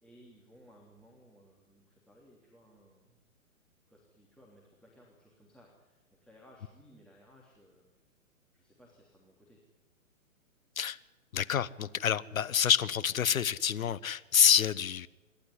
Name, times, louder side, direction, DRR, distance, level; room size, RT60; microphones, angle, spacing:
voice 1, 0.0-3.2 3.9-7.9 8.5-9.6, equal, ahead, 3.2 m, -60 dB
voice 2, 11.3-15.1, left 9 dB, 75° left, 1.1 m, -27 dB
27.5 x 12.0 x 9.9 m
hypercardioid pair, 130°, 41 cm